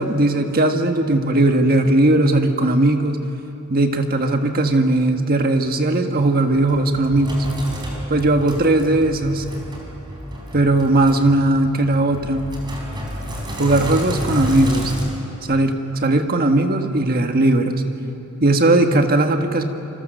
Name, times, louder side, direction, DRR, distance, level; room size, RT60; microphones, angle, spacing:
voice 1, 0.0-3.3 3.7-7.5 8.1-9.5 10.5-12.5 13.6-14.9 15.5-17.8 18.4-19.6, right 2 dB, 40° right, 5 dB, 1.6 m, -18 dB
Sink (filling or washing), 6.2-15.0, equal, 20° right, 4.4 m, -31 dB
27.5 x 25.0 x 6.7 m, 2.8 s
head